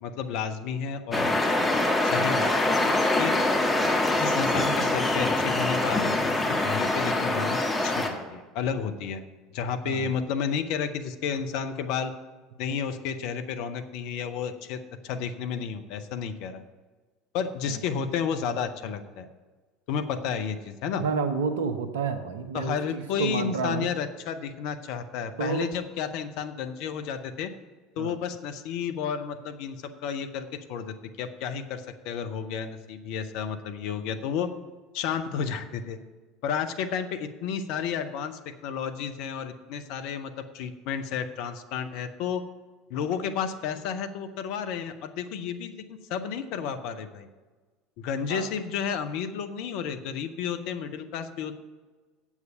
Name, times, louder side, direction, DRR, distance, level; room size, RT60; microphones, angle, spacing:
voice 1, 0.0-1.4 2.0-2.5 3.2-3.4 4.2-9.2 9.5-12.1 12.6-16.6 17.3-19.3 19.9-21.0 22.5-27.5 28.0-34.5 34.9-36.0 36.4-42.4 42.9-47.3 48.0-51.5, left 7 dB, 60° left, 8 dB, 0.7 m, -32 dB
sound 1, 1.1-8.1, left 2 dB, 15° left, 1.5 m, -24 dB
voice 2, 21.0-23.9 25.4-25.7 28.0-28.1 48.3-48.5, right 5 dB, 70° right, 8 dB, 0.8 m, -30 dB
8.0 x 7.3 x 6.8 m, 1.3 s
figure-of-eight pair, 65°, 0 cm